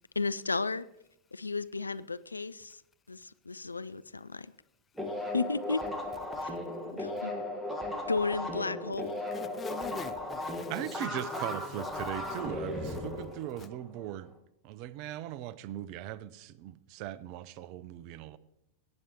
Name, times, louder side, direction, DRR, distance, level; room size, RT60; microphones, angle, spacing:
voice 1, 0.2-0.9 1.3-2.8 3.1-4.5 5.3-5.8 6.9-7.3 8.1-9.2, left 3 dB, 80° left, 0.3 m, -33 dB
sound 1, 5.0-14.1, left 1 dB, 5° right, 1.5 m, -36 dB
voice 2, 9.3-12.4 12.9-13.0 13.6-13.7, left 6 dB, 20° left, 0.6 m, -44 dB
voice 3, 10.7-14.3 14.6-18.4, right 12 dB, 45° right, 0.5 m, -39 dB
18.5 x 8.8 x 2.9 m
figure-of-eight pair, 90°, 0 cm